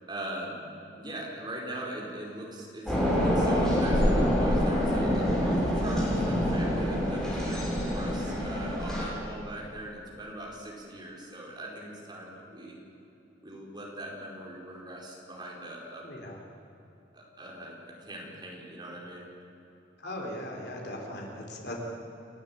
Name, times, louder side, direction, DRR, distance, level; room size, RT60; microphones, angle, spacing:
voice 1, 0.1-0.7 1.0-12.8 13.4-16.2 17.1-19.3, right 1 dB, 25° right, -2 dB, 4.8 m, -41 dB
sound 1, 2.9-9.0, equal, 5° left, 6.8 m, -26 dB
voice 2, 16.0-16.4 20.0-21.8, left 1 dB, 60° left, 0 dB, 4.1 m, -38 dB
30.0 x 12.5 x 8.8 m, 2.9 s
head